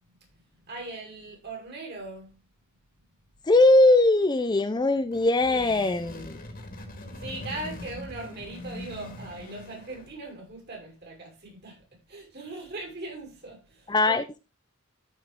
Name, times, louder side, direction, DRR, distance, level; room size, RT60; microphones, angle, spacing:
voice 1, 0.6-2.4 5.5-6.2 7.1-14.2, right 2 dB, 50° right, 5.7 m, -40 dB
voice 2, 3.5-6.4 13.9-14.2, left 2 dB, 20° left, 0.5 m, -20 dB
sound 1, 5.0-10.3, left 1 dB, 45° left, 2.1 m, -42 dB
13.5 x 5.4 x 3.6 m
head